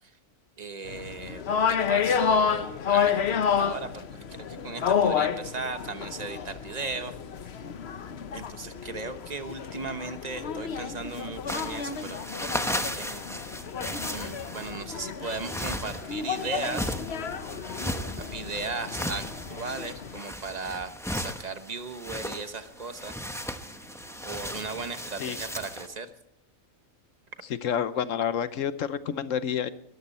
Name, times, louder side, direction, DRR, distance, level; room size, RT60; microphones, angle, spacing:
voice 1, 0.6-7.1 8.3-12.2 12.9-13.4 14.0-17.0 18.2-23.1 24.2-26.1, right 4 dB, 35° right, 9 dB, 1.2 m, -37 dB
sound 1, 0.9-20.2, left 7 dB, 55° left, 1.0 m, -30 dB
sound 2, 11.5-25.9, equal, 5° left, 0.7 m, -36 dB
sound 3, 12.7-26.2, right 7 dB, 65° right, 2.5 m, -52 dB
voice 2, 27.6-29.7, left 8 dB, 75° left, 13 dB, 1.1 m, -29 dB
21.0 x 14.0 x 4.3 m, 0.77 s
omnidirectional pair, 1.4 m